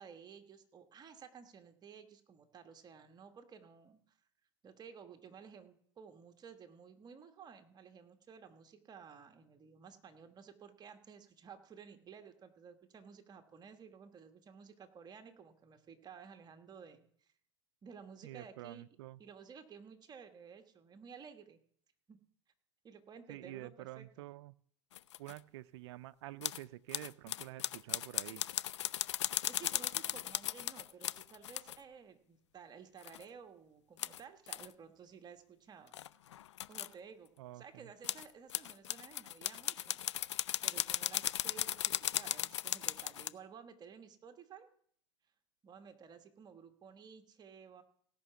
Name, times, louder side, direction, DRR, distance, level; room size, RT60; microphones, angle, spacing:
voice 1, 0.0-4.2 4.6-17.3 17.8-18.8 19.2-21.6 22.1-22.2 22.8-24.1 29.5-35.9 36.7-40.0 40.6-44.7 45.6-47.8, right 6 dB, 30° right, 7 dB, 1.3 m, -54 dB
voice 2, 18.2-19.2 23.3-24.5 25.2-28.4 37.4-37.9, right 16 dB, 75° right, 14 dB, 0.4 m, -48 dB
sound 1, 24.9-25.4 26.4-26.6 26.9-31.8 33.0-33.2 34.0-34.2 34.5-34.7 35.9-36.9 38.0-43.3, left 12 dB, 90° left, 0.4 m, -37 dB
17.0 x 5.8 x 6.9 m, 0.64 s
hypercardioid pair, 100°, 14 cm